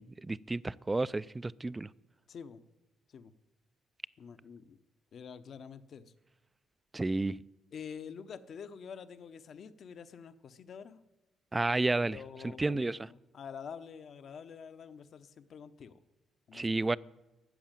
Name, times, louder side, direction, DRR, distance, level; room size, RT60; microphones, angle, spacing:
voice 1, 0.0-1.9 6.9-7.4 11.5-12.2 12.4-13.1 16.5-17.0, right 2 dB, 20° right, 0.4 m, -31 dB
voice 2, 2.3-2.6 3.1-3.3 4.2-4.8 5.1-6.1 7.7-11.0 12.0-16.0 16.5-16.7, left 7 dB, 60° left, 0.9 m, -47 dB
14.0 x 7.3 x 9.0 m
supercardioid pair, 65°, 0 cm